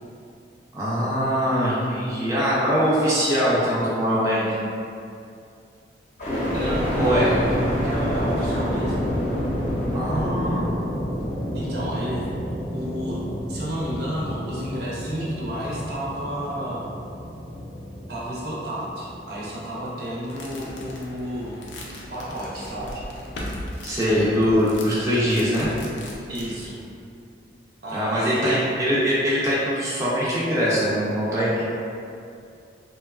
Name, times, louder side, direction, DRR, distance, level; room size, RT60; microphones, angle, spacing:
voice 1, 0.7-4.6 6.9-7.3 9.9-10.7 23.8-25.7 27.9-31.6, equal, 15° right, -9 dB, 0.4 m, -22 dB
sound 1, 6.2-20.2 20.7-21.4, equal, 45° left, 0.6 m, -29 dB
voice 2, 6.5-9.1 10.1-10.6 11.5-12.4 12.7-13.2 13.5-16.9 18.1-21.6 22.1-23.0 26.3-26.8 27.8-28.7, equal, 60° right, -6 dB, 0.6 m, -31 dB
sound 2, 20.3-26.7, left 1 dB, 90° left, 0.4 m, -38 dB
2.9 x 2.2 x 2.3 m, 2.5 s
head